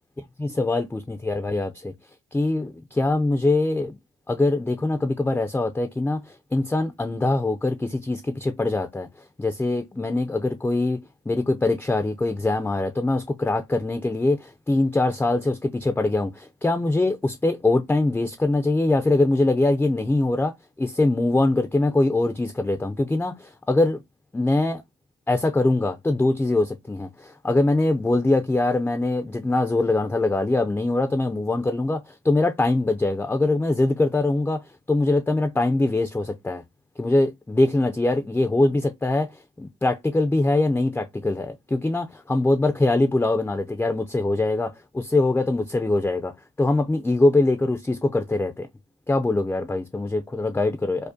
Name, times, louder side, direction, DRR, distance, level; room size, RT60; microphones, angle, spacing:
voice 1, 0.4-1.9 2.3-4.0 4.3-9.1 9.4-24.0 24.3-24.8 25.3-36.6 37.0-46.3 46.6-48.7 49.1-51.0, left 2 dB, 5° left, 0.3 m, -23 dB
4.9 x 2.1 x 2.6 m
cardioid pair, 90°, 30 cm